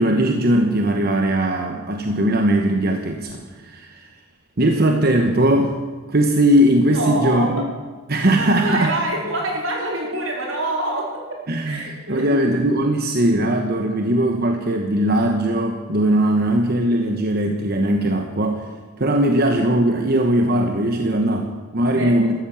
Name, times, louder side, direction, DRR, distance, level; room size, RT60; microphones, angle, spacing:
voice 1, 0.0-4.1 4.6-5.8 6.1-7.7 8.1-8.9 11.5-18.6 19.0-22.3, right 1 dB, 50° right, 4 dB, 1.2 m, -19 dB
voice 2, 6.9-7.7 8.6-12.4 21.8-22.2, right 1 dB, 80° right, -1 dB, 4.4 m, -26 dB
13.5 x 13.5 x 7.2 m, 1.4 s
head